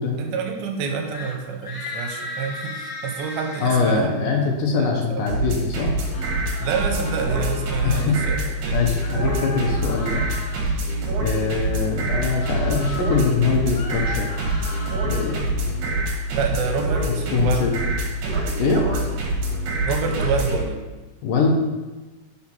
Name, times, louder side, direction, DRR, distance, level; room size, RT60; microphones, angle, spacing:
voice 1, 0.2-4.3 4.7-5.2 6.6-8.4 8.6-8.9 16.3-17.7 19.8-20.8, right 5 dB, 80° right, 3 dB, 2.6 m, -28 dB
sound 1, 1.0-1.4 1.6-3.8 5.9-8.1 9.0-10.8 12.2-13.2 13.6-15.5, left 2 dB, 50° left, 1.4 m, -36 dB
voice 2, 3.6-5.9 7.8-8.2 8.7-10.2 11.2-14.3 15.0-16.0 17.3-17.7 18.6-18.9 21.2-21.5, left 5 dB, 75° left, 1 dB, 2.3 m, -23 dB
sound 2, 5.3-20.6, right 1 dB, 60° right, 2.5 m, -25 dB
6.0 x 5.6 x 5.9 m, 1.2 s
omnidirectional pair, 4.4 m